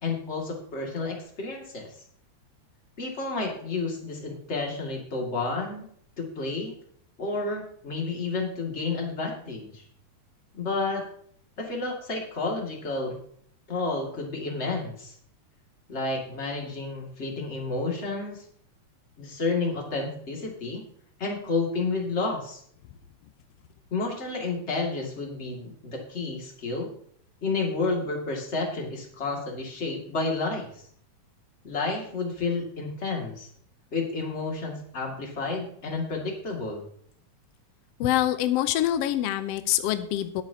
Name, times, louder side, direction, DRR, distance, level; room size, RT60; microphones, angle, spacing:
voice 1, 0.0-1.9 3.0-5.9 6.2-6.7 7.2-9.8 10.5-11.0 11.6-13.2 13.7-15.1 15.9-18.4 19.2-20.8 21.2-22.6 23.9-26.9 27.4-30.8 31.6-33.5 33.9-36.8, left 3 dB, 25° left, 0 dB, 2.1 m, -30 dB
voice 2, 38.0-40.4, left 13 dB, 75° left, 10 dB, 1.5 m, -25 dB
20.5 x 7.6 x 2.8 m, 0.63 s
omnidirectional pair, 3.5 m